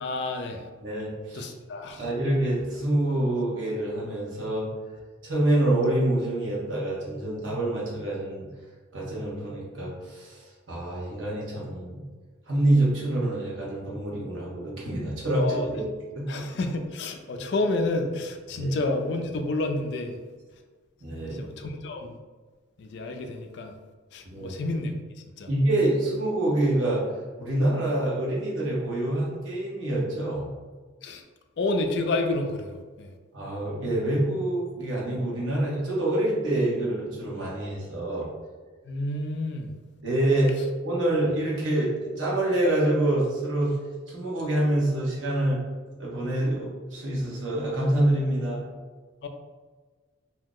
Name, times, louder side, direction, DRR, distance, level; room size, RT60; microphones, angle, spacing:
voice 1, 0.0-0.7 1.3-2.1 15.3-15.9 16.3-20.2 21.1-22.2 22.8-23.7 24.1-24.9 25.4-25.5 31.0-31.2 31.6-33.1 38.8-39.7 49.2-49.3, left 2 dB, 60° left, 5 dB, 0.3 m, -30 dB
voice 2, 0.8-1.5 2.0-4.7 5.2-8.5 8.9-10.4 10.7-12.0 12.5-15.8 16.1-16.4 17.3-17.4 18.6-18.8 21.0-21.5 24.2-24.6 25.5-27.0 27.4-30.5 33.3-38.3 40.0-40.5 40.8-43.7 44.1-45.6 46.0-48.6, right 1 dB, 70° right, -5 dB, 1.0 m, -26 dB
2.7 x 2.0 x 3.6 m, 1.4 s
head